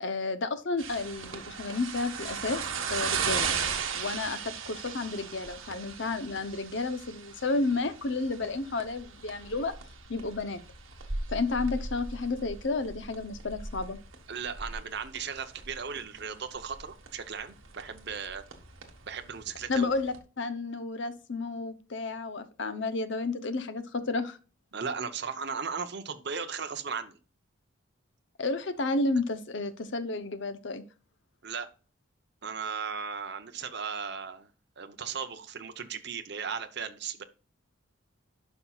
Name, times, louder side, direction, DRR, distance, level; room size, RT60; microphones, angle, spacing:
voice 1, 0.0-3.5 3.9-9.7 10.1-10.6 11.3-14.0 19.7-24.4 28.4-30.8, left 3 dB, 60° left, 12 dB, 0.7 m, -31 dB
sound 1, 0.8-20.2, right 5 dB, 75° right, 1.4 m, -37 dB
voice 2, 14.3-18.4 19.1-19.9 24.7-27.2 31.4-31.7 32.4-34.5 34.8-37.2, right 6 dB, 55° right, 7 dB, 0.7 m, -36 dB
11.5 x 5.6 x 2.4 m, 0.35 s
head